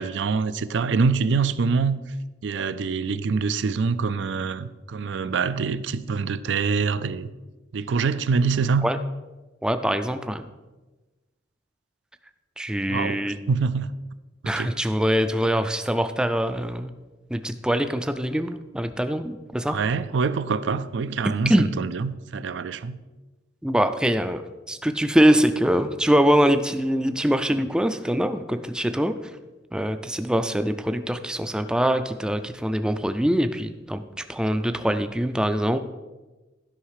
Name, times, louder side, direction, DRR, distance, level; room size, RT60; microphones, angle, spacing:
voice 1, 0.0-2.0 2.4-7.3 7.7-8.8 12.9-13.9 14.4-14.8 19.7-23.0, right 5 dB, 75° right, 14 dB, 0.4 m, -25 dB
voice 2, 9.6-10.5 12.6-13.4 14.5-16.9 17.3-19.8 21.5-21.7 23.6-24.4 24.7-29.2 29.7-34.0 34.3-35.8, equal, 5° right, 9 dB, 0.3 m, -23 dB
11.5 x 5.6 x 4.8 m, 1.2 s
head